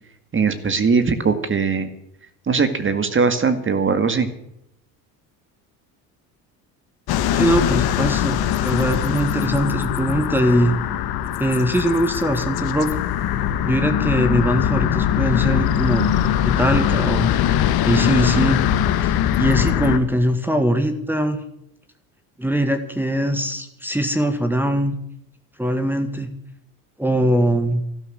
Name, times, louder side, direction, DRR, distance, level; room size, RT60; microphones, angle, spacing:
voice 1, 0.3-1.9 2.5-4.3, right 5 dB, 30° right, 9 dB, 2.1 m, -20 dB
sound 1, 7.1-20.0, left 10 dB, 60° left, 1.4 m, -21 dB
voice 2, 7.4-8.4 8.6-10.7 11.4-13.0 13.6-16.1 16.4-17.3 17.8-18.6 19.0-21.4 22.4-24.9 25.6-26.3 27.0-27.8, right 1 dB, 5° right, 8 dB, 1.8 m, -21 dB
12.5 x 12.0 x 7.9 m, 0.77 s
supercardioid pair, 90°, 42 cm